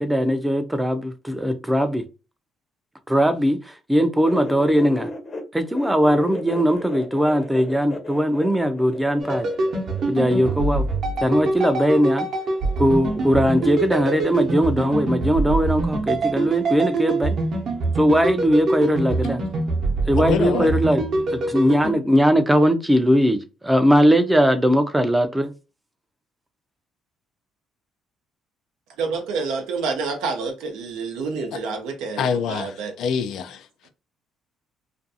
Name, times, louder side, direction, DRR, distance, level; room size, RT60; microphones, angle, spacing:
voice 1, 0.0-2.0 3.1-5.1 5.5-9.5 10.1-10.9 11.2-12.3 12.8-17.4 18.0-19.4 20.1-21.0 21.3-23.4 23.6-25.5, equal, 10° right, 0.4 m, -19 dB
sound 1, 4.2-5.4 5.7-11.2 12.2-12.8 13.1-14.2, left 2 dB, 35° left, 0.7 m, -36 dB
sound 2, 9.2-21.9, right 3 dB, 60° right, 0.8 m, -24 dB
voice 2, 20.2-20.7 31.5-31.6 32.2-33.7, left 6 dB, 75° left, 0.4 m, -25 dB
voice 3, 29.0-32.9, right 4 dB, 90° right, 0.5 m, -28 dB
2.5 x 2.3 x 2.6 m
cardioid pair, 95°, 0 cm